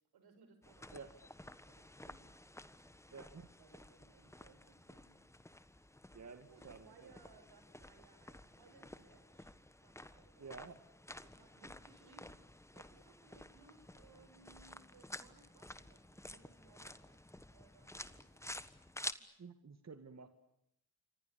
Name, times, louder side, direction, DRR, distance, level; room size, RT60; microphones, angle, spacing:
voice 1, 0.1-1.0 1.6-2.3 3.6-5.2 6.0-10.8 11.2-17.1 17.5-18.4, right 4 dB, 80° right, 8 dB, 6.3 m, -65 dB
sound 1, 0.6-19.1, left 1 dB, 5° left, 1.4 m, -52 dB
voice 2, 3.1-3.5 6.1-7.1 10.4-10.8 19.4-20.3, right 5 dB, 45° right, 8 dB, 2.1 m, -51 dB
29.5 x 25.0 x 7.0 m, 0.77 s
cardioid pair, 70°, 38 cm